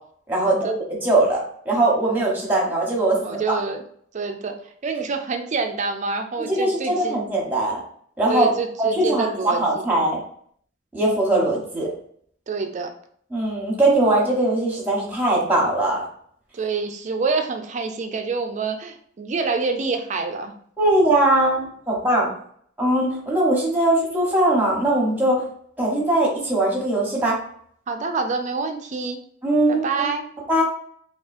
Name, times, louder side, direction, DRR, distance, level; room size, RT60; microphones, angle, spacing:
voice 1, 0.3-0.7 1.0-1.4 1.6-3.6 6.5-7.8 8.2-8.5 8.8-10.2 10.9-11.9 13.3-16.0 20.8-22.3 22.8-25.4 25.8-27.4 29.4-30.1 30.5-30.6, right 1 dB, 10° right, -3 dB, 0.9 m, -20 dB
voice 2, 3.2-3.8 4.1-7.2 8.3-9.8 12.5-12.9 16.5-20.5 27.9-29.2 29.7-30.2, right 4 dB, 35° right, 5 dB, 0.4 m, -27 dB
3.6 x 2.4 x 2.5 m, 0.62 s
head